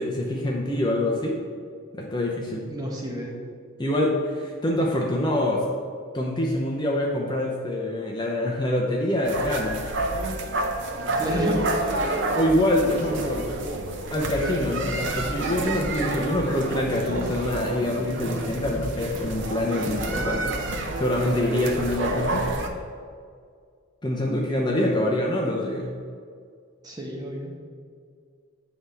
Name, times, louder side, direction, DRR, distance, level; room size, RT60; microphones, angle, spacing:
voice 1, 0.0-1.4 1.9-2.7 3.8-5.6 6.1-9.8 12.3-13.5 14.1-20.6 20.9-22.4 24.0-25.9, left 1 dB, 20° left, -2 dB, 0.6 m, -25 dB
voice 2, 2.7-3.3 11.2-11.6 16.2-16.4 26.8-27.5, right 1 dB, 20° right, -1 dB, 0.9 m, -30 dB
sound 1, 9.2-22.7, right 2 dB, 55° right, 0.6 m, -29 dB
7.7 x 3.4 x 5.5 m, 2.2 s
head